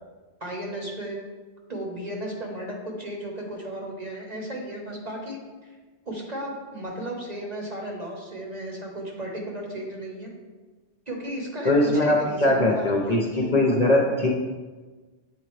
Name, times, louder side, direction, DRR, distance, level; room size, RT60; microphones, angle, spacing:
voice 1, 0.4-1.2 1.7-5.7 6.1-10.3 11.1-13.5, right 1 dB, 40° right, -1 dB, 1.0 m, -34 dB
voice 2, 11.6-14.3, left 1 dB, 45° left, -1 dB, 0.6 m, -21 dB
7.9 x 3.8 x 3.1 m, 1.3 s
omnidirectional pair, 1.1 m